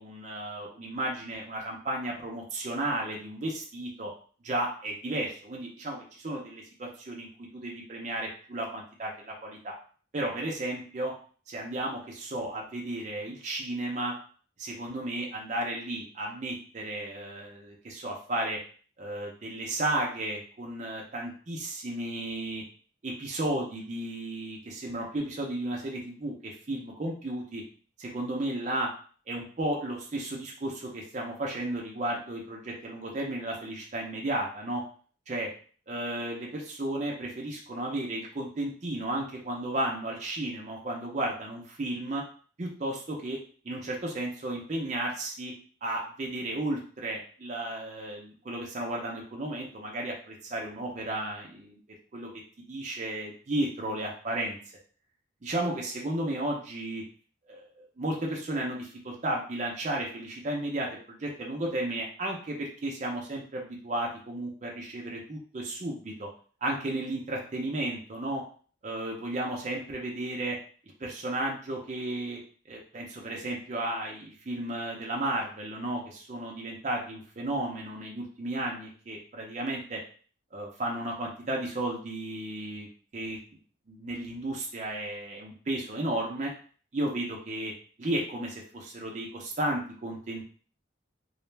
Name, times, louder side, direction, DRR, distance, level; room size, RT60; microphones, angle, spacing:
voice 1, 0.0-4.1 4.4-7.3 7.5-9.7 10.1-11.1 11.5-14.1 14.6-18.6 19.0-22.6 23.0-27.6 28.0-28.9 29.3-34.8 35.3-35.5 35.9-42.2 42.6-43.4 43.6-45.5 45.8-51.8 52.1-52.3 52.7-54.6 55.4-57.0 57.5-66.3 66.6-68.4 68.8-70.6 71.0-72.4 72.7-80.0 80.5-82.9 83.1-83.4 83.9-86.5 86.9-87.7 88.0-90.4, right 1 dB, 35° right, -1 dB, 0.5 m, -33 dB
2.4 x 2.1 x 3.1 m, 0.43 s
head